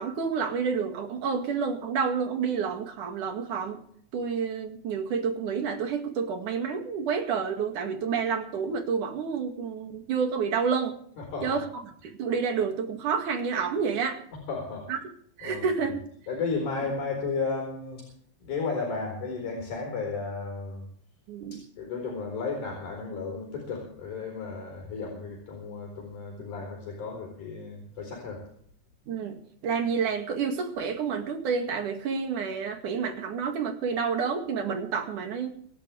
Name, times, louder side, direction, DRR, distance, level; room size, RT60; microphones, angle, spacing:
voice 1, 0.0-3.8 4.1-10.9 11.4-14.2 14.9-15.0 15.4-16.0 21.3-21.6 29.1-35.5, right 6 dB, 85° right, 5 dB, 3.6 m, -29 dB
voice 2, 11.2-11.6 14.3-14.9 15.4-15.9 16.3-18.1 18.4-20.9 21.5-28.4, left 4 dB, 75° left, 2 dB, 5.8 m, -34 dB
25.5 x 11.0 x 3.4 m, 0.63 s
omnidirectional pair, 3.5 m